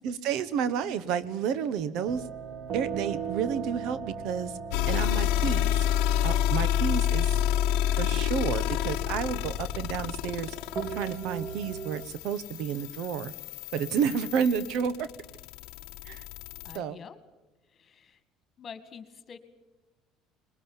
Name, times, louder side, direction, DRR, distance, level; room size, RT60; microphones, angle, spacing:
voice 1, 0.0-2.2 2.7-4.5 4.9-5.9 6.2-7.4 8.0-10.6 10.9-13.3 13.7-15.1 16.1-16.2 16.7-17.0, right 7 dB, 70° right, 16 dB, 1.1 m, -30 dB
sound 1, 2.1-12.1, right 6 dB, 50° right, 1.7 m, -39 dB
sound 2, 4.7-16.8, left 11 dB, 80° left, 1.0 m, -29 dB
voice 2, 16.6-17.2 17.7-18.2 18.6-19.4, left 6 dB, 35° left, 11 dB, 2.1 m, -46 dB
21.0 x 20.5 x 9.1 m, 1.1 s
supercardioid pair, 105°, 0 cm